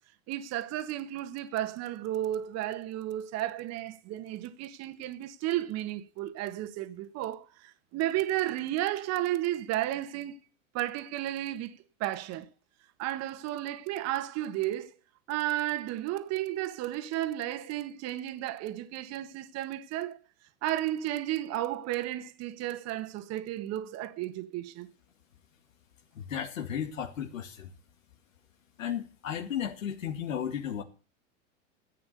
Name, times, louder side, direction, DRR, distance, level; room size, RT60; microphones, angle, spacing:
voice 1, 0.3-10.4 10.7-12.5 13.0-14.9 15.3-20.2 20.6-24.9, right 14 dB, 40° right, 1.6 m, -33 dB
voice 2, 26.1-27.7 28.8-30.8, left 9 dB, 85° left, 2.3 m, -34 dB
14.5 x 8.6 x 6.8 m
hypercardioid pair, 110°, 39 cm